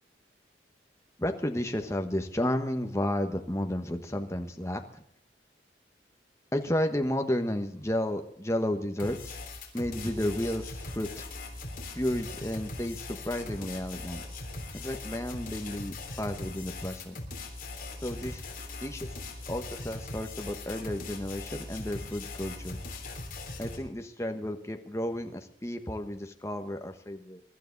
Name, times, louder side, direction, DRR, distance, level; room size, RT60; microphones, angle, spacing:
voice 1, 1.2-5.0 6.5-9.3 9.7-11.3 11.9-14.2 14.7-17.2 18.0-18.4 18.8-19.1 19.5-22.8 23.6-27.4, left 1 dB, 15° left, 5 dB, 1.3 m, -32 dB
sound 1, 9.0-23.8, left 2 dB, 50° left, 3.5 m, -40 dB
23.0 x 12.0 x 4.0 m, 0.69 s
head